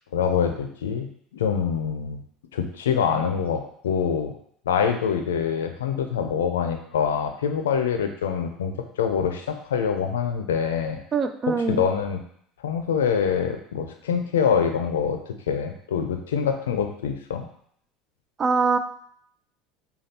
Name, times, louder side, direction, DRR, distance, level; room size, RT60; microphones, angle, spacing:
voice 1, 0.1-1.1 1.3-2.2 2.5-4.3 4.7-11.0 11.6-12.2 12.6-17.5, left 7 dB, 85° left, 6 dB, 0.4 m, -25 dB
voice 2, 11.1-11.9 18.4-18.8, right 4 dB, 35° right, 8 dB, 0.4 m, -23 dB
5.2 x 2.3 x 2.8 m, 0.66 s
hypercardioid pair, 75°, 0 cm